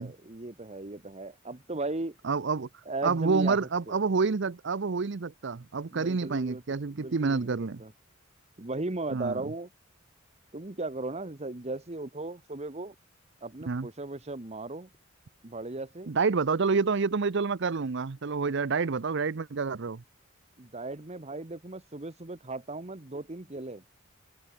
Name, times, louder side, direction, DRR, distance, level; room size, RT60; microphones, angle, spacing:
voice 1, 0.0-2.2 2.9-3.6 3.9-4.0 5.9-6.6 6.9-7.9 8.6-9.7 10.5-12.9 13.4-14.9 15.4-16.2 20.6-23.8, right 2 dB, 30° right, 1.2 m, -37 dB
voice 2, 2.2-2.7 3.0-7.8 9.1-9.4 13.7-13.9 16.1-20.0, right 4 dB, 60° right, 0.6 m, -28 dB
open air
head